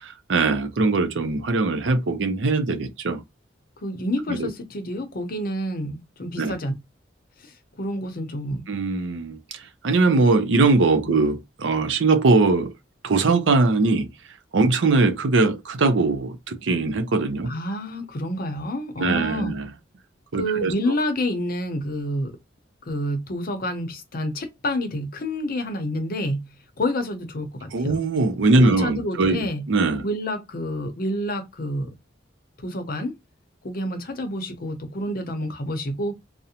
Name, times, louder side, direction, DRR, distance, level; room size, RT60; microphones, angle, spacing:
voice 1, 0.3-3.2 4.3-4.5 6.4-6.5 8.7-12.7 13.0-14.1 14.5-17.5 19.0-19.7 20.3-21.0 27.7-30.0, right 3 dB, 75° right, 0.5 m, -21 dB
voice 2, 3.8-6.7 7.4-8.6 17.5-19.5 20.4-22.4 22.8-26.5 26.8-28.0 28.6-29.6 30.0-31.9 32.6-33.2 33.6-36.2, left 1 dB, 50° left, 0.6 m, -28 dB
2.4 x 2.0 x 2.8 m
head